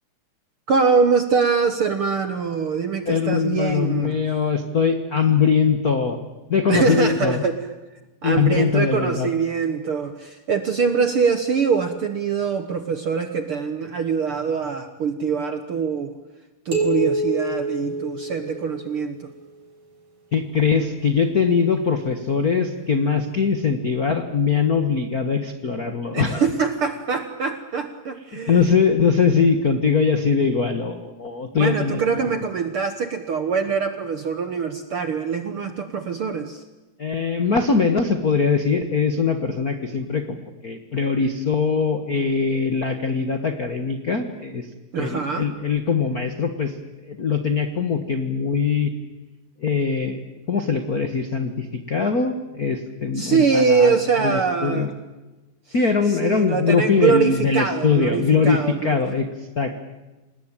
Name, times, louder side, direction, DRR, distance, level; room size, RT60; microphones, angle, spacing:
voice 1, 0.7-4.2 6.7-7.7 8.2-16.2 16.6-19.3 26.1-28.6 31.5-36.6 44.9-45.5 53.2-54.9 56.1-59.0, right 5 dB, 65° right, 8 dB, 1.4 m, -23 dB
voice 2, 3.1-6.2 6.5-7.4 8.2-9.3 20.3-26.4 28.3-32.3 37.0-44.7 45.0-46.7 47.0-48.9 49.6-50.2 50.5-54.0 54.2-54.9 55.7-59.3 59.6-59.8, left 5 dB, 65° left, 8 dB, 0.8 m, -21 dB
sound 1, 16.7-19.1, right 2 dB, 35° right, 6.9 m, -26 dB
27.5 x 19.5 x 9.0 m, 1.1 s
omnidirectional pair, 4.0 m